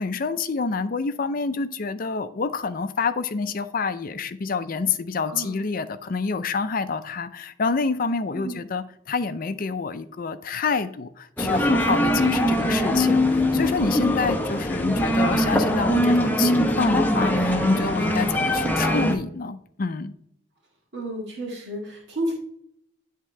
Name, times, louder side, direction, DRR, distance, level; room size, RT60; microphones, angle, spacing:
voice 1, 0.0-20.1, left 4 dB, 50° left, 11 dB, 0.5 m, -27 dB
sound 1, 11.4-19.1, left 1 dB, 10° left, 0.8 m, -22 dB
voice 2, 12.5-13.3 18.5-18.7 20.9-22.3, right 1 dB, 65° right, -3 dB, 1.9 m, -32 dB
10.0 x 3.7 x 4.3 m, 0.70 s
head